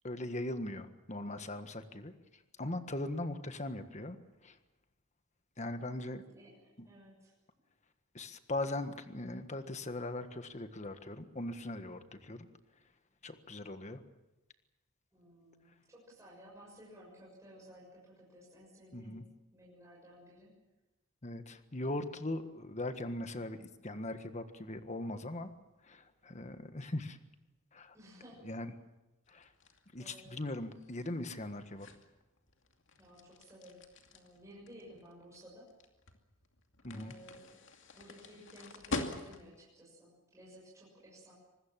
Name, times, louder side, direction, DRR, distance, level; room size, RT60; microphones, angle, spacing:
voice 1, 0.0-2.1 2.6-4.2 4.4-4.6 5.6-6.2 6.8-6.9 8.1-12.5 13.2-14.0 18.9-19.2 21.2-25.5 25.8-27.2 27.7-27.9 28.4-28.7 29.3-29.5 29.9-31.9 36.8-37.1, left 1 dB, 35° left, 9 dB, 1.5 m, -40 dB
voice 2, 6.2-6.6 6.8-7.3 15.1-19.2 19.5-20.6 27.9-28.5 30.0-30.3 33.0-33.8 34.1-35.7 36.9-37.6 37.9-41.3, equal, 15° right, -5 dB, 6.6 m, -56 dB
sound 1, 29.3-39.7, left 2 dB, 60° left, 2.5 m, -46 dB
25.0 x 20.5 x 7.5 m, 1.0 s
head